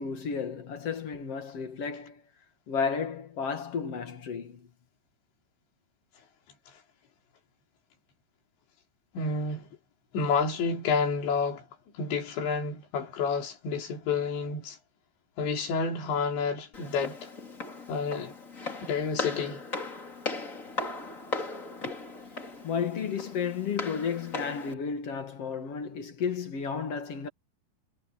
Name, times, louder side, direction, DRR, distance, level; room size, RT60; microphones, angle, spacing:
voice 1, 0.0-2.2 2.7-4.7 21.9-22.0 22.6-27.3, left 6 dB, 45° left, 2.1 m, -33 dB
voice 2, 9.1-9.7 10.1-11.7 11.9-14.8 15.4-17.3 17.9-18.4 18.8-19.6, left 5 dB, 85° left, 5.9 m, -29 dB
Walk footsteps, 16.7-24.7, left 3 dB, 20° left, 3.1 m, -38 dB
omnidirectional pair, 5.1 m